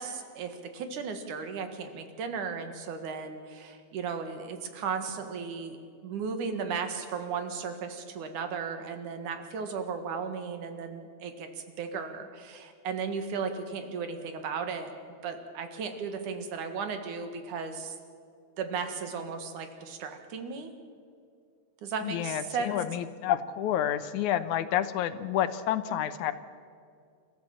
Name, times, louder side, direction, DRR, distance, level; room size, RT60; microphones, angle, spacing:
voice 1, 0.0-5.8 6.0-14.9 15.2-18.0 18.6-20.7 21.8-22.7, right 5 dB, 85° right, 7 dB, 3.1 m, -35 dB
voice 2, 22.0-26.3, left 11 dB, 80° left, 12 dB, 2.3 m, -29 dB
29.5 x 14.0 x 7.5 m, 2.3 s
omnidirectional pair, 3.4 m